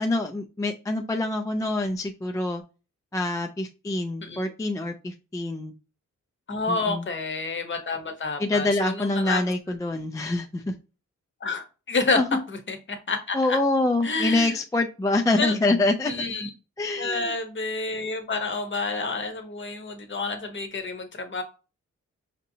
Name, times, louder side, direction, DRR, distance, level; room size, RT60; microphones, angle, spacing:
voice 1, 0.0-2.6 3.1-5.7 6.7-7.0 8.4-10.7 12.1-12.4 13.3-16.1 16.8-17.3, left 2 dB, 10° left, 0.3 m, -25 dB
voice 2, 6.5-9.4 11.4-12.2 12.5-12.8 13.1-13.6 14.0-14.5 15.4-15.5 16.0-16.5 17.0-21.4, left 3 dB, 40° left, 0.8 m, -29 dB
5.1 x 2.7 x 2.6 m
wide cardioid pair, 115°, 30 cm